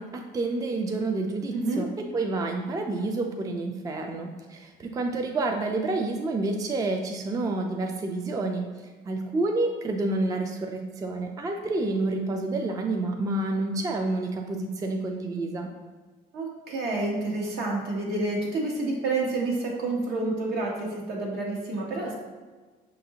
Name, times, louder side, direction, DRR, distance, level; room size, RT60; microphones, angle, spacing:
voice 1, 0.0-1.9 2.1-8.6 9.1-15.7, right 2 dB, 20° right, 3 dB, 0.3 m, -29 dB
voice 2, 1.5-1.9 16.3-22.1, right 2 dB, 75° right, -2 dB, 1.1 m, -29 dB
5.5 x 2.5 x 2.8 m, 1.4 s
cardioid pair, 110°, 17 cm